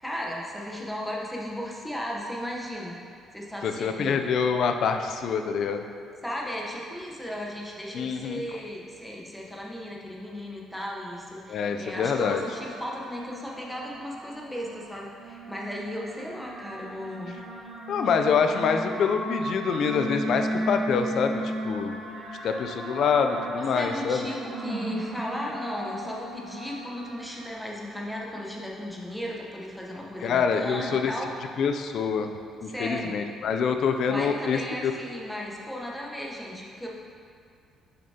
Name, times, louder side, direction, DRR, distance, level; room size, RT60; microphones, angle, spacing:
voice 1, 0.0-3.0 3.3-4.2 6.2-17.7 23.7-31.3 32.7-33.1 34.1-36.9, equal, ahead, -3 dB, 0.8 m, -36 dB
voice 2, 3.6-5.8 7.9-8.4 11.5-12.4 17.9-21.9 22.4-24.2 30.2-31.1 31.6-32.3 32.6-34.9, left 6 dB, 55° left, 6 dB, 0.4 m, -26 dB
sound 1, 11.9-27.5, right 1 dB, 60° right, 1.1 m, -36 dB
6.8 x 6.5 x 2.8 m, 2.3 s
cardioid pair, 140°, 0 cm